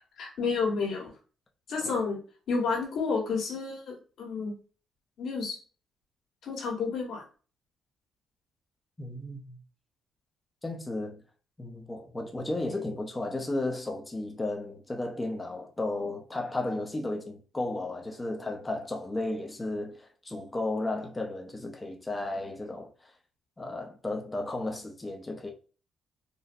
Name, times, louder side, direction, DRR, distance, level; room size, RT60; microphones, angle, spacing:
voice 1, 0.2-1.1 1.7-2.2 2.5-4.5 5.2-5.6 6.4-7.2, left 4 dB, 70° left, 1.5 m, -30 dB
voice 2, 9.0-9.6 10.6-11.2 11.6-23.1 23.6-25.5, left 2 dB, 20° left, 0.6 m, -34 dB
4.0 x 2.1 x 2.7 m
cardioid pair, 90°, 0 cm